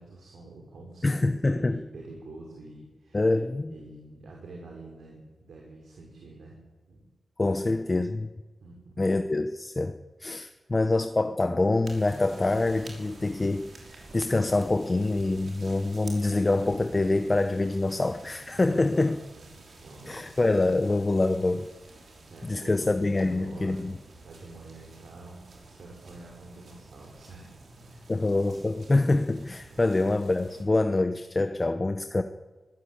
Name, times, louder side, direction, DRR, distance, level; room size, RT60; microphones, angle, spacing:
voice 1, 0.0-3.4 3.7-6.5 6.9-7.0 7.4-7.7 8.6-9.0 18.5-20.4 22.0-23.9 24.2-27.5 27.8-28.1 29.7-29.8, right 2 dB, 80° right, 0 dB, 5.5 m, -47 dB
voice 2, 1.0-1.8 3.1-3.7 7.4-8.3 9.0-9.9 10.2-13.7 14.1-19.1 20.1-21.7 22.4-24.0 28.1-32.2, left 2 dB, 25° left, 8 dB, 0.8 m, -25 dB
sound 1, 11.8-30.6, right 2 dB, 65° right, 6.2 m, -50 dB
24.5 x 15.5 x 9.8 m, 1.3 s
wide cardioid pair, 155°, 0 cm